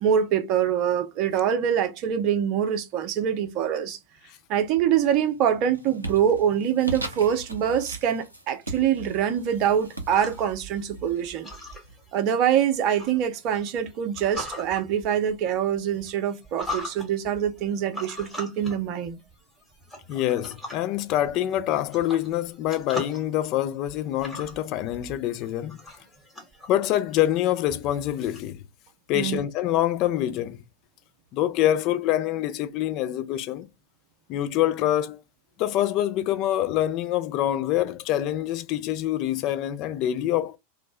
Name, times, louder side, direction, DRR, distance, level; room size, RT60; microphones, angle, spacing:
voice 1, 0.0-4.0 4.5-11.5 12.1-19.2 29.1-29.4, right 9 dB, 40° right, 0.5 m, -24 dB
sound 1, 4.7-5.2 5.5-12.2, right 2 dB, 85° right, 0.6 m, -39 dB
sound 2, 9.5-28.4, left 1 dB, 5° left, 1.1 m, -42 dB
voice 2, 20.1-25.8 26.7-28.6 29.1-30.6 31.3-33.7 34.3-35.2 35.6-40.6, left 12 dB, 40° left, 0.3 m, -25 dB
2.5 x 2.0 x 3.1 m
figure-of-eight pair, 90°, 0 cm